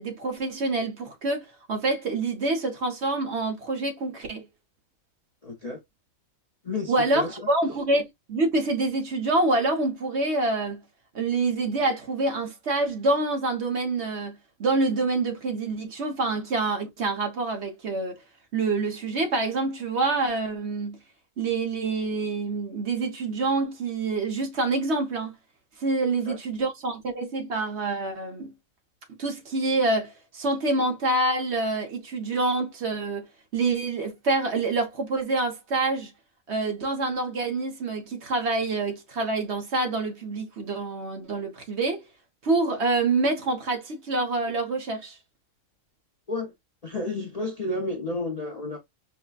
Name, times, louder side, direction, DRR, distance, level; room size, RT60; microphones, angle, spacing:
voice 1, 0.0-4.4 6.9-10.8 11.1-18.2 18.5-21.0 21.4-25.3 25.8-28.5 29.2-33.3 33.5-36.1 36.5-42.0 42.4-45.2, right 3 dB, 55° right, 1.1 m, -26 dB
voice 2, 5.4-5.8 6.6-7.5 26.3-26.4 46.3-46.5 46.8-48.8, left 2 dB, 40° left, 0.5 m, -31 dB
4.9 x 2.1 x 2.3 m
omnidirectional pair, 1.5 m